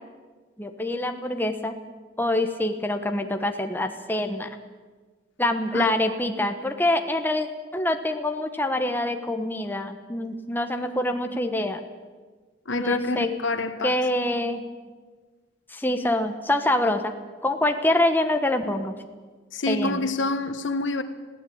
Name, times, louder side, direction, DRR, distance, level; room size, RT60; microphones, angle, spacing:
voice 1, 0.6-1.7 2.2-4.5 5.4-11.8 12.7-13.3 13.8-14.6 15.7-17.1 17.4-18.9 19.7-20.0, left 1 dB, 10° left, 6 dB, 1.2 m, -25 dB
voice 2, 12.6-14.0 19.5-21.0, left 3 dB, 80° left, 9 dB, 1.5 m, -27 dB
21.0 x 16.0 x 8.7 m, 1.4 s
head